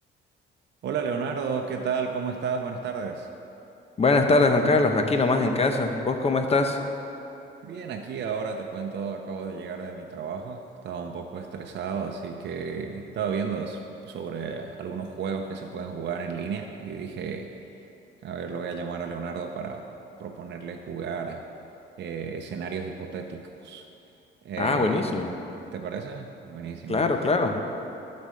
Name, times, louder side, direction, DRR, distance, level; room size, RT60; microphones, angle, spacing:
voice 1, 0.8-3.3 7.6-17.5 18.2-19.9 20.2-21.4 22.0-23.9 24.4-25.1 25.7-27.0, right 6 dB, 60° right, 3 dB, 0.7 m, -33 dB
voice 2, 4.0-6.8 24.6-25.3 26.9-27.6, left 3 dB, 30° left, 5 dB, 0.9 m, -22 dB
12.0 x 4.3 x 6.3 m, 2.9 s
cardioid pair, 90°, 20 cm